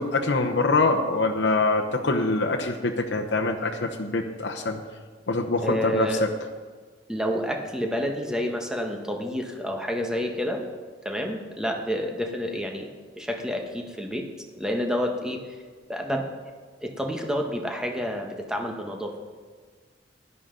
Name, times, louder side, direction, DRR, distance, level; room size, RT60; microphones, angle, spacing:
voice 1, 0.0-4.8 5.3-6.3, left 3 dB, 70° left, 1 dB, 0.9 m, -24 dB
voice 2, 5.6-6.2 7.1-10.7 11.0-12.9 13.2-14.3 14.5-15.4 15.9-16.2 16.8-19.1, equal, 5° right, 2 dB, 1.2 m, -29 dB
16.0 x 11.0 x 3.9 m, 1.5 s
head